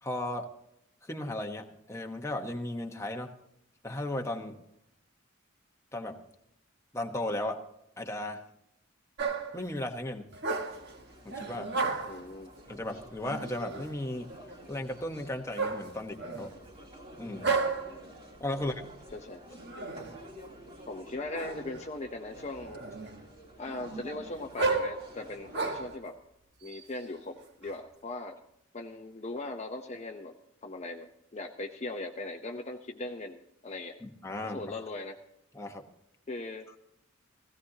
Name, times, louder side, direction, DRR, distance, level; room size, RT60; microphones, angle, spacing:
voice 1, 0.0-0.5 1.0-3.3 3.8-4.6 5.9-6.2 6.9-7.6 8.0-8.4 9.5-10.3 11.2-11.7 12.7-14.3 14.7-16.5 17.2-17.5 18.4-18.8 34.0-34.7 35.5-35.8, left 1 dB, 15° left, 3 dB, 1.0 m, -35 dB
sound 1, 9.2-9.6 10.3-10.9 11.3-12.3 13.2-14.0 15.6-16.6 17.4-18.0 19.5-20.2 21.3-21.9 22.4-23.2 23.7-26.0 26.7-27.8, right 4 dB, 60° right, 1.4 m, -33 dB
sound 2, 10.7-26.0, equal, 30° right, 2.8 m, -51 dB
voice 2, 12.1-12.5 18.5-18.7 19.1-19.4 20.9-22.8 23.6-26.2 26.6-28.4 28.7-30.3 30.6-34.0 34.5-35.2 36.3-36.7, left 2 dB, 35° left, 4 dB, 0.7 m, -39 dB
17.0 x 15.5 x 2.8 m, 0.81 s
head